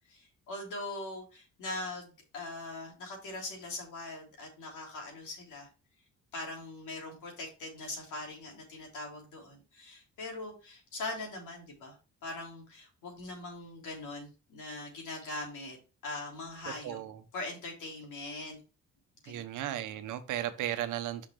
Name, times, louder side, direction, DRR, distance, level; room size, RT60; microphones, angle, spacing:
voice 1, 0.1-5.7 6.3-11.9 12.2-15.8 16.0-17.0 17.3-18.6 19.2-19.7, left 2 dB, 80° left, 3.3 m, -41 dB
voice 2, 16.8-17.2 19.3-21.3, right 12 dB, 90° right, 0.9 m, -35 dB
6.1 x 5.8 x 3.3 m
cardioid pair, 90°, 30 cm